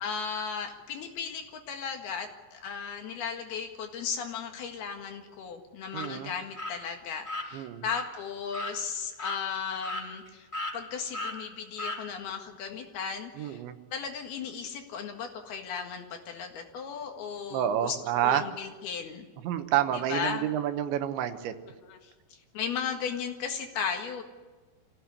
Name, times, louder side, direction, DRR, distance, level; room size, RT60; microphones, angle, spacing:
voice 1, 0.0-10.5 10.7-13.6 13.9-18.0 18.2-19.3 20.1-20.5 21.7-22.1 22.5-24.2, left 6 dB, 65° left, 4 dB, 3.4 m, -36 dB
sound 1, 5.9-6.1 6.6-6.7 7.2-7.5 7.9-8.0 8.5-8.8 9.2-9.4 9.8-10.3 10.5-10.8 11.1-11.4 11.8-12.0, left 1 dB, 10° left, 3.7 m, -35 dB
voice 2, 5.9-6.3 7.5-7.8 13.4-13.8 17.5-18.4 19.4-21.6, right 11 dB, 80° right, 9 dB, 3.4 m, -29 dB
25.0 x 16.5 x 9.8 m, 1.3 s
omnidirectional pair, 5.3 m